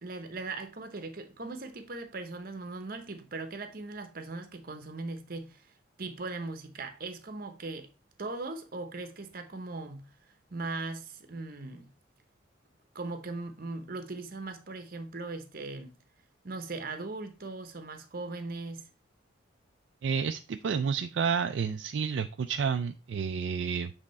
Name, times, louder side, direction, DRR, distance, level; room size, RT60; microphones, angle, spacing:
voice 1, 0.0-5.7 6.0-7.9 8.2-10.1 10.5-11.9 12.9-16.0 16.4-18.9, right 3 dB, 50° right, 0.9 m, -39 dB
voice 2, 20.0-23.9, right 6 dB, 65° right, 0.4 m, -30 dB
7.5 x 3.6 x 4.2 m
head